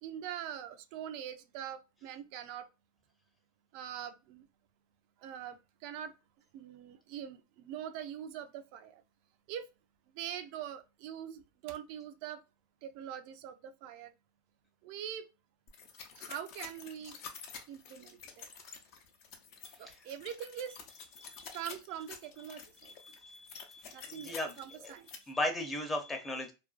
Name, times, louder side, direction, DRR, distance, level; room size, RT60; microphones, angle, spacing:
voice 1, 0.0-2.7 3.7-4.5 5.2-6.1 6.5-9.0 9.5-9.6 10.1-12.4 12.8-14.1 14.8-15.2 16.2-17.2 17.7-18.5 19.8-20.8 21.5-22.9 23.9-25.1, right 10 dB, 60° right, 0.3 m, -43 dB
sound 1, 15.7-25.2, left 6 dB, 55° left, 0.5 m, -49 dB
voice 2, 23.0-24.6 24.8-24.9 25.3-26.5, left 1 dB, 15° left, 0.6 m, -36 dB
2.4 x 2.2 x 2.3 m
supercardioid pair, 125°, 0 cm